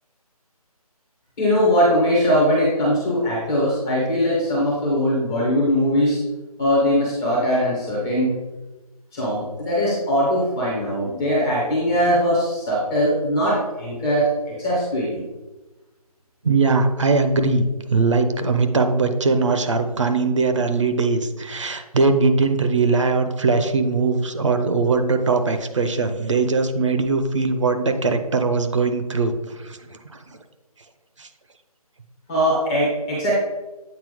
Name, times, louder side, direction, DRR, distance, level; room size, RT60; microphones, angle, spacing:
voice 1, 1.4-6.2 6.6-8.3 9.1-15.2 32.3-33.3, equal, 5° left, -7 dB, 0.5 m, -21 dB
voice 2, 16.4-29.8 31.2-31.3, right 4 dB, 50° right, 7 dB, 0.7 m, -20 dB
8.0 x 4.3 x 3.6 m, 1.1 s
figure-of-eight pair, 155°, 20 cm